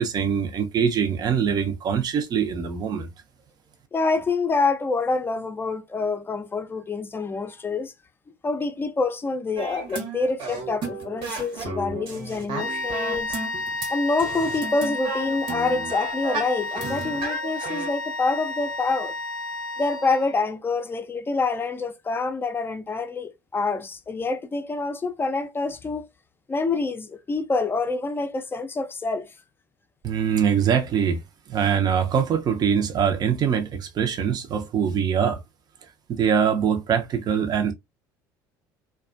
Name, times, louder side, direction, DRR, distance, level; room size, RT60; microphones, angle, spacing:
voice 1, 0.0-3.1 30.0-31.2 31.5-35.4 36.1-37.7, right 7 dB, 40° right, 0.6 m, -23 dB
voice 2, 3.9-7.9 8.4-13.4 13.9-19.1 19.8-26.1 26.5-29.3, left 3 dB, 20° left, 0.5 m, -26 dB
sound 1, 9.6-13.9 14.2-17.9, right 3 dB, 60° right, 1.0 m, -33 dB
sound 2, 12.6-20.4, left 2 dB, 85° left, 0.5 m, -32 dB
2.4 x 2.2 x 2.4 m
hypercardioid pair, 70°, 10 cm